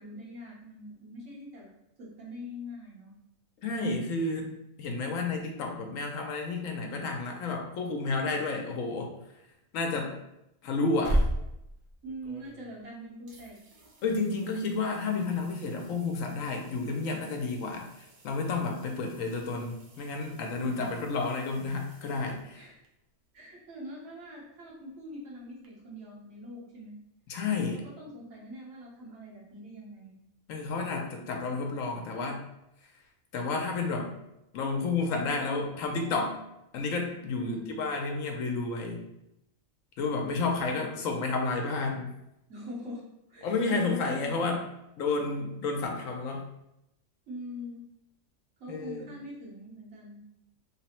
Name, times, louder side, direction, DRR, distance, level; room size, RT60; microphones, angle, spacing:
voice 1, 0.0-1.7 2.0-3.1 12.0-13.6 20.5-21.0 22.5-22.7 23.3-27.0 27.5-30.1 37.4-37.8 40.6-40.9 42.5-43.0 43.3-44.0 44.2-44.6 47.3-47.8 48.6-50.2, equal, 75° right, -6 dB, 1.6 m, -43 dB
voice 2, 3.6-4.5 4.8-9.1 9.7-10.2 10.6-11.2 14.0-22.7 27.3-27.8 30.5-32.4 33.3-34.1 34.5-36.4 36.7-39.0 40.0-42.1 43.4-44.6 45.0-46.5 48.7-49.1, left 3 dB, 75° left, 2 dB, 1.0 m, -31 dB
sound 1, 10.7-12.9 13.3-22.9 25.6-25.7, right 1 dB, 55° right, 0.6 m, -38 dB
3.4 x 2.0 x 4.2 m, 0.83 s
omnidirectional pair, 1.4 m